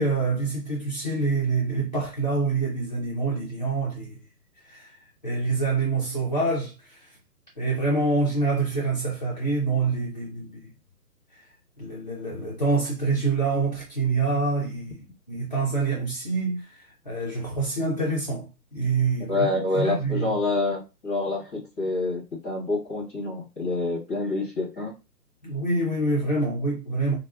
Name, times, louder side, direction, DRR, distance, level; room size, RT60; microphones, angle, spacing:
voice 1, 0.0-4.2 4.6-7.2 7.6-10.7 11.3-11.4 11.8-15.0 15.3-19.5 19.7-20.4 25.4-27.2, right 3 dB, 30° left, 0.5 m, -26 dB
voice 2, 19.3-24.9, left 2 dB, 5° left, 1.0 m, -27 dB
4.4 x 2.2 x 2.3 m
hypercardioid pair, 170°, 49 cm